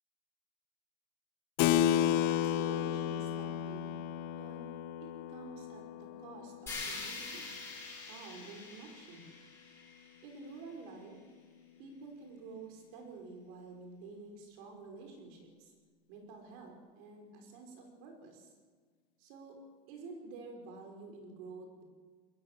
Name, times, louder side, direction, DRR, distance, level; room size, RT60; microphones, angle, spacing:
Keyboard (musical), 1.6-7.6, left 10 dB, 60° left, 1.1 m, -33 dB
voice 1, 1.9-4.0 4.3-4.6 5.0-7.5 8.0-9.3 10.2-11.2 11.8-15.7 16.1-18.5 19.2-19.6 19.9-21.8, right 4 dB, 80° right, 3 dB, 5.9 m, -49 dB
sound 1, 6.7-10.7, left 3 dB, 15° left, 6.8 m, -45 dB
22.0 x 15.5 x 8.6 m, 1.5 s
cardioid pair, 180°, 18 cm